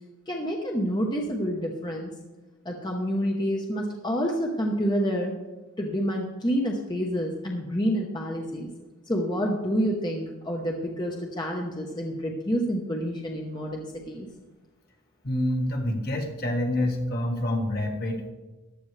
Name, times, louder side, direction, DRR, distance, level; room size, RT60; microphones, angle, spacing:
voice 1, 0.3-2.1 2.6-5.3 5.8-8.7 9.1-14.3, equal, 20° left, 0 dB, 1.0 m, -28 dB
voice 2, 15.2-18.3, left 1 dB, 45° left, 2 dB, 1.6 m, -27 dB
15.0 x 11.0 x 3.3 m, 1.2 s
head